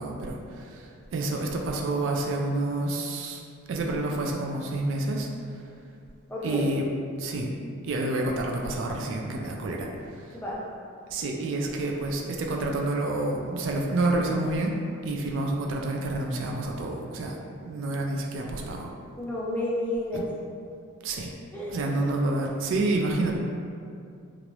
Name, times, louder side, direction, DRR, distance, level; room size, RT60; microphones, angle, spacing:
voice 1, 0.0-3.4 3.7-5.3 6.4-6.9 7.2-7.5 7.8-10.3 11.1-14.8 15.0-17.4 17.6-18.9 20.1-20.2 21.0-21.3 21.7-23.4, right 2 dB, 60° right, 0 dB, 0.3 m, -28 dB
voice 2, 6.3-6.7 10.3-10.6 19.2-20.3 21.5-21.8, left 1 dB, 10° left, -6 dB, 0.4 m, -31 dB
3.0 x 2.5 x 3.0 m, 2.4 s
head